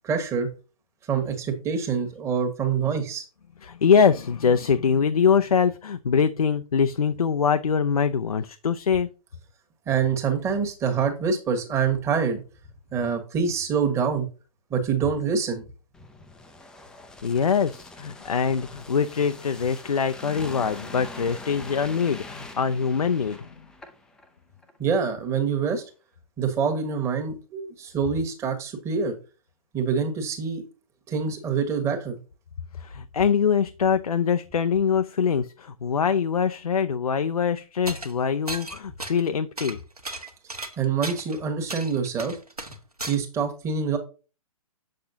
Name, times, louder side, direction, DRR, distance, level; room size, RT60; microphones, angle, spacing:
voice 1, 0.0-0.5 1.1-3.2 9.9-12.4 12.9-14.3 14.7-15.6 24.8-25.8 26.4-29.1 29.7-30.6 31.1-32.2 40.8-42.3 43.1-44.0, right 6 dB, 15° right, 1.4 m, -25 dB
voice 2, 3.6-9.1 17.2-23.5 32.8-39.8, left 6 dB, 75° left, 0.5 m, -23 dB
sound 1, 15.9-24.3 24.6-24.8, left 2 dB, 5° left, 0.5 m, -43 dB
sound 2, 37.9-38.1 38.5-39.3 39.6-41.4 41.7-43.2, right 2 dB, 90° right, 1.2 m, -35 dB
7.5 x 6.4 x 2.7 m
figure-of-eight pair, 120°, 19 cm